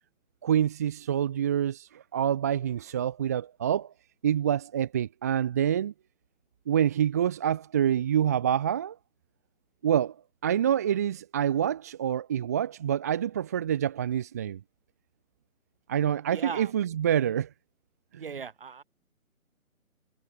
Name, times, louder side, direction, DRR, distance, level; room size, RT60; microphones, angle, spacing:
voice 1, 0.4-3.9 4.2-5.9 6.7-9.0 9.8-10.1 10.4-14.6 15.9-17.5 18.1-18.2, right 9 dB, 10° right, 1.5 m, -27 dB
voice 2, 16.3-16.7 18.2-18.8, right 6 dB, 40° right, 4.3 m, -38 dB
hypercardioid pair, 170°, 43 cm